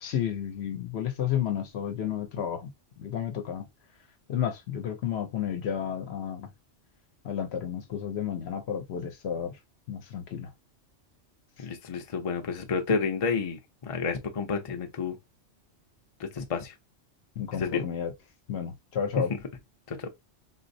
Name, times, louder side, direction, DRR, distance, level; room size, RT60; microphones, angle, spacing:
voice 1, 0.0-2.7 3.0-3.7 4.3-6.5 7.2-9.5 9.9-10.5 17.4-18.1 18.5-19.3, left 9 dB, 65° left, 0.8 m, -31 dB
voice 2, 11.6-15.2 16.2-16.7 17.5-17.9 19.2-19.4 19.9-20.1, left 5 dB, 40° left, 0.5 m, -30 dB
3.9 x 2.0 x 2.6 m
omnidirectional pair, 1.2 m